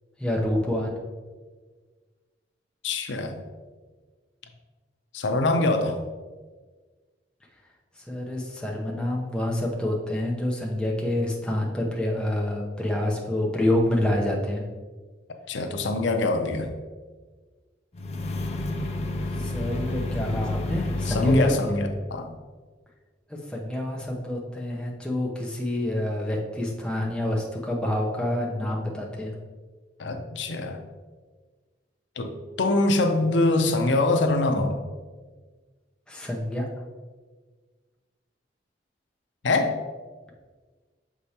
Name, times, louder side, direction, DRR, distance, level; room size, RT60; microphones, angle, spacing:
voice 1, 0.2-0.9 8.1-14.6 19.4-21.8 23.3-29.3 36.1-36.7, left 1 dB, 5° left, -3 dB, 0.7 m, -27 dB
voice 2, 2.8-3.4 5.1-6.0 15.5-16.7 21.1-22.3 30.0-30.8 32.2-32.3 32.6-34.8 39.4-39.8, left 2 dB, 85° left, 5 dB, 0.6 m, -23 dB
sound 1, 17.9-21.6, left 2 dB, 35° left, 0.5 m, -29 dB
6.7 x 4.9 x 2.8 m, 1.4 s
head